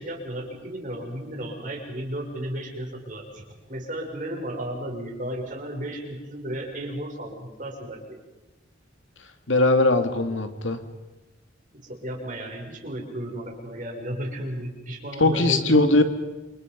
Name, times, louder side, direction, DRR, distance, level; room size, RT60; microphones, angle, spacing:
voice 1, 0.0-3.4 3.7-8.0 11.7-15.8, right 1 dB, 45° right, 0 dB, 6.4 m, -34 dB
voice 2, 9.5-10.8 15.2-16.0, left 2 dB, 80° left, 7 dB, 2.5 m, -20 dB
28.5 x 27.5 x 5.4 m, 1.1 s
head